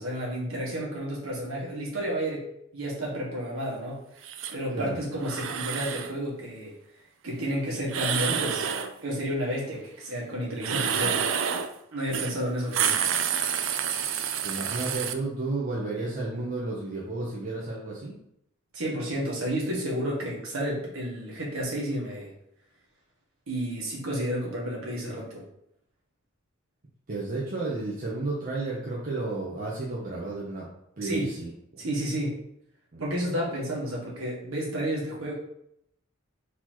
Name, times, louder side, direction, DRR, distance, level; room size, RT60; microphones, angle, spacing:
voice 1, 0.0-4.0 4.5-6.7 7.2-8.7 9.0-11.2 11.9-13.0 18.7-22.3 23.5-25.4 31.0-31.3 31.8-32.4 33.0-35.3, equal, 80° right, -4 dB, 1.6 m, -31 dB
sound 1, 4.2-4.5 5.2-6.1 7.9-8.9 10.6-11.7 12.1-12.3 12.6-15.1, right 8 dB, 65° right, 0.4 m, -28 dB
voice 2, 14.4-18.2 27.1-30.7 31.0-31.9 32.9-33.3, right 2 dB, 40° right, -5 dB, 0.8 m, -32 dB
4.2 x 2.9 x 4.4 m, 0.77 s
head